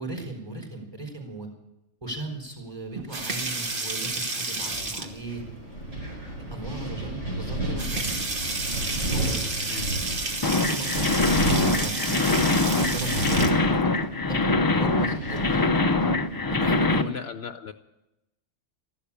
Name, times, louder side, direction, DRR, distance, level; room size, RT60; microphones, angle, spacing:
voice 1, 0.0-1.5 2.0-5.4 6.5-8.0 9.0-9.4 10.6-13.5 14.3-15.7 16.6-17.0, right 2 dB, 20° right, 2 dB, 4.1 m, -37 dB
sound 1, 2.9-5.3 6.7-6.8 7.2-7.3 7.7-13.5 15.2-15.8, right 2 dB, 50° right, 1.6 m, -31 dB
voice 2, 4.6-5.0 9.7-9.9 14.7-15.0 16.9-17.7, left 7 dB, 65° left, 9 dB, 0.9 m, -37 dB
Wind, 5.1-16.6, right 1 dB, 80° right, 5.0 m, -33 dB
sound 2, 10.4-17.0, left 3 dB, 30° left, 0.4 m, -23 dB
14.0 x 11.5 x 8.7 m, 0.94 s
omnidirectional pair, 1.2 m